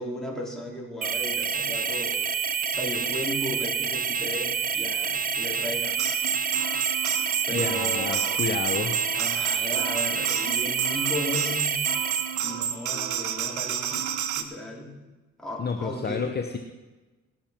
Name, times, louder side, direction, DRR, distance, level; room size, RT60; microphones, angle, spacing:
voice 1, 0.0-2.2 2.7-6.0 7.5-8.4 9.1-11.8 12.4-15.0 15.4-16.3, left 1 dB, ahead, -3 dB, 3.7 m, -35 dB
sound 1, 1.0-12.4, right 6 dB, 30° right, 0.8 m, -28 dB
sound 2, 6.0-14.4, right 9 dB, 75° right, 1.0 m, -30 dB
voice 2, 7.5-8.9 15.6-16.6, left 5 dB, 35° left, 5 dB, 0.9 m, -30 dB
18.0 x 6.8 x 5.9 m, 1.2 s
cardioid pair, 90°, 30 cm